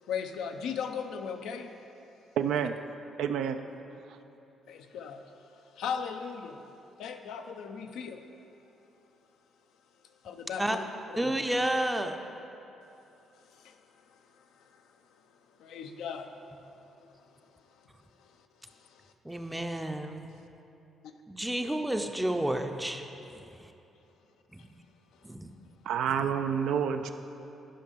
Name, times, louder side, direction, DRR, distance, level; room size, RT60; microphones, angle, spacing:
voice 1, 0.1-1.7 4.7-5.4 5.7-6.6 7.0-8.2 10.2-10.8 11.1-11.3 13.5-13.8 14.1-14.8 15.6-16.4 18.2-19.1 21.0-21.1 24.6-24.7 25.2-25.3, left 7 dB, 85° left, 6 dB, 0.6 m, -38 dB
voice 2, 2.4-2.7 3.2-3.6 4.1-4.2 25.9-27.1, right 8 dB, 80° right, 7 dB, 0.4 m, -28 dB
voice 3, 11.2-12.2 19.2-20.3 21.3-23.1 23.3-23.7 24.5-24.6 25.2-25.5, right 1 dB, 5° right, 5 dB, 0.5 m, -31 dB
11.5 x 5.4 x 5.2 m, 2.9 s
cardioid pair, 90°, 0 cm